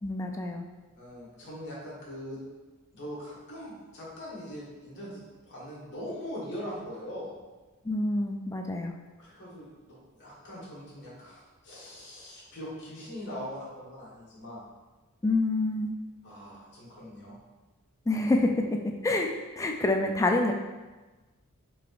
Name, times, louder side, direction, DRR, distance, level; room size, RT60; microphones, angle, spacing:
voice 1, 0.0-0.6 7.9-8.9 15.2-15.9 18.1-18.7 19.0-20.5, left 2 dB, 15° left, 3 dB, 0.3 m, -27 dB
voice 2, 1.0-2.4 2.9-7.4 9.2-14.6 16.2-17.4, equal, 55° left, -5 dB, 1.4 m, -41 dB
4.8 x 3.8 x 2.4 m, 1.2 s
head